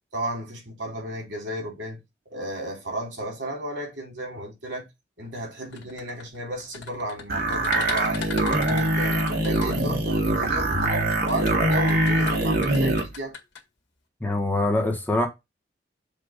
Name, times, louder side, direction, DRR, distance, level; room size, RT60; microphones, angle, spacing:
voice 1, 0.1-2.0 2.3-4.9 5.2-8.2 8.5-13.3, right 1 dB, 80° right, 3.1 m, -33 dB
sound 1, 5.6-10.3 11.0-13.6, left 5 dB, 85° left, 1.9 m, -38 dB
sound 2, 7.3-13.1, right 1 dB, 60° right, 1.7 m, -23 dB
voice 2, 14.2-15.3, left 2 dB, 10° left, 1.3 m, -24 dB
7.2 x 2.8 x 5.1 m
head